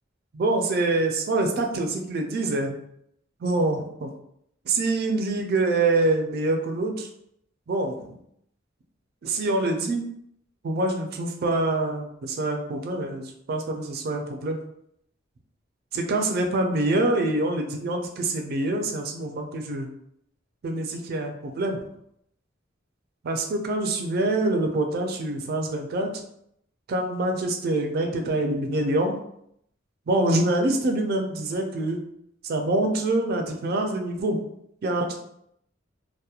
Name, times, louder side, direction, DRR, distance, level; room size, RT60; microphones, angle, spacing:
voice 1, 0.3-2.8 3.4-4.1 4.7-7.1 7.7-8.2 9.2-10.1 10.6-14.6 15.9-19.9 20.6-21.8 23.2-26.2 26.9-29.2 30.1-32.0 32.4-34.4 34.8-35.2, right 2 dB, 55° right, 3 dB, 0.4 m, -25 dB
2.8 x 2.1 x 2.3 m, 0.73 s
head